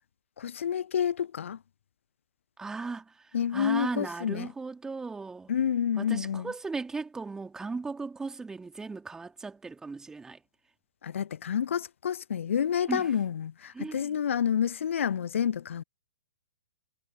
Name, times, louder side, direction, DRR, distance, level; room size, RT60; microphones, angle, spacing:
voice 1, 0.4-1.6 3.3-4.5 5.5-6.5 11.0-15.8, left 8 dB, 60° left, 0.5 m, -29 dB
voice 2, 2.6-5.5 6.0-10.4 12.9-13.1 13.7-14.2, right 4 dB, 5° right, 3.1 m, -37 dB
figure-of-eight pair, 120°, 8 cm